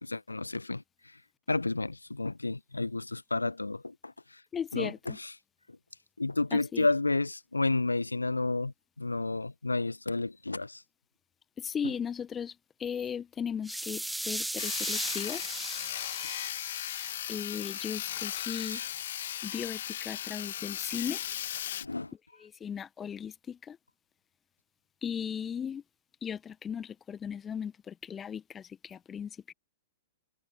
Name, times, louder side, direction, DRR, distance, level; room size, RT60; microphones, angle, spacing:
voice 1, 0.0-0.8 1.5-4.1 4.7-5.3 6.2-10.8 11.8-11.9 18.7-18.9 21.8-22.1, left 2 dB, 80° left, 1.4 m, -31 dB
voice 2, 4.5-5.2 6.5-6.9 11.6-12.5 12.8-15.4 17.3-18.8 19.4-21.2 22.4-23.8 25.0-25.8 26.2-29.5, left 7 dB, 15° left, 1.2 m, -37 dB
sound 1, 13.6-17.7, right 1 dB, ahead, 0.8 m, -37 dB
Sawing, 14.6-21.8, left 11 dB, 55° left, 1.9 m, -36 dB
figure-of-eight pair, 105°, 0 cm